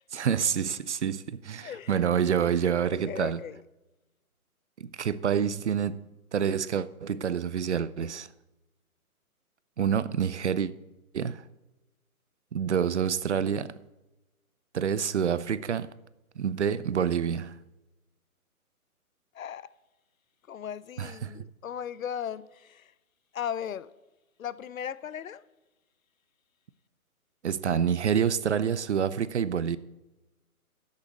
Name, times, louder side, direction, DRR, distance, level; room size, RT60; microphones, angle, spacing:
voice 1, 0.1-3.4 4.8-6.0 6.3-8.3 9.8-10.7 11.1-11.4 12.5-13.7 14.7-15.9 16.4-17.6 21.0-21.3 27.4-29.8, right 8 dB, 55° right, 0.5 m, -27 dB
voice 2, 1.6-2.0 2.9-3.6 19.3-19.7 20.5-22.9 23.3-23.9 24.4-25.4, left 9 dB, 65° left, 0.6 m, -37 dB
8.3 x 6.6 x 8.2 m
hypercardioid pair, 160°, 44 cm